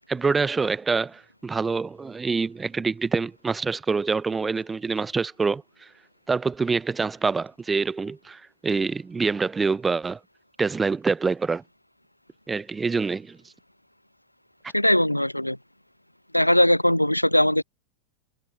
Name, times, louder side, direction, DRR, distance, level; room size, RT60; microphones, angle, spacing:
voice 1, 0.1-5.9 6.3-10.2 10.6-11.6 12.5-13.4, right 4 dB, 15° right, 0.7 m, -26 dB
voice 2, 14.7-15.6 16.3-17.6, left 1 dB, 90° left, 0.4 m, -20 dB
figure-of-eight pair, 90°, 0 cm